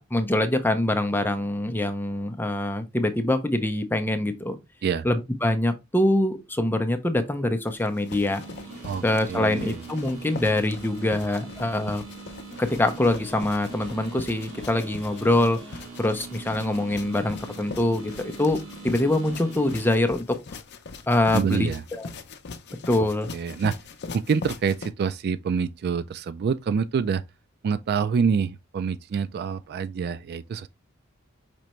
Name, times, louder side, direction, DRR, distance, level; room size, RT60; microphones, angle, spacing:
voice 1, 0.0-4.6 5.0-8.4 9.0-12.0 12.6-18.6 18.8-20.4 21.1-22.1 22.9-23.3, left 1 dB, 10° left, 0.6 m, -24 dB
sound 1, 7.7-24.9, left 4 dB, 55° left, 0.6 m, -41 dB
sound 2, 8.3-19.9, right 4 dB, 75° right, 1.2 m, -42 dB
voice 2, 9.3-9.8 21.3-21.8 23.3-23.8 24.1-27.2 27.6-30.7, right 6 dB, 50° right, 0.3 m, -26 dB
5.2 x 3.3 x 3.0 m
head